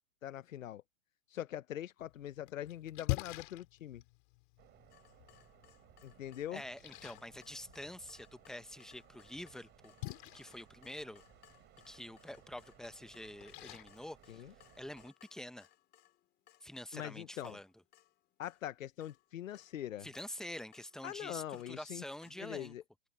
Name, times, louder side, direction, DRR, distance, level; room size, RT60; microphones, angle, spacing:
voice 1, 0.2-0.8 1.3-4.0 6.0-6.6 14.3-14.5 16.9-17.6 18.4-20.1 21.0-22.0 22.4-22.8, left 11 dB, 80° left, 0.8 m, -43 dB
Splash splatter, 2.0-15.0, left 28 dB, 40° left, 3.9 m, -47 dB
sound 1, 4.6-15.1, right 14 dB, 25° right, 5.4 m, -63 dB
Water tap faucet / Drip, 4.9-22.3, left 14 dB, 25° left, 3.8 m, -66 dB
voice 2, 6.5-9.9 10.3-11.2 11.9-14.4 14.8-15.7 16.6-17.7 20.0-22.7, left 1 dB, ahead, 0.8 m, -47 dB
hypercardioid pair, 140°, 39 cm